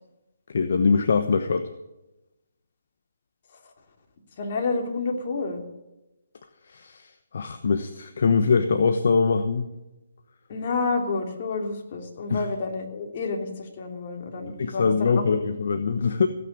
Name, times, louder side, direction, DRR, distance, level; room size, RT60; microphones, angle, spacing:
voice 1, 0.5-1.7 6.7-9.7 12.3-12.5 14.6-16.3, left 5 dB, 60° left, 8 dB, 1.1 m, -23 dB
voice 2, 4.4-5.6 10.5-15.3, left 3 dB, 45° left, 2 dB, 3.1 m, -29 dB
16.0 x 9.0 x 8.6 m, 0.98 s
figure-of-eight pair, 150°, 0 cm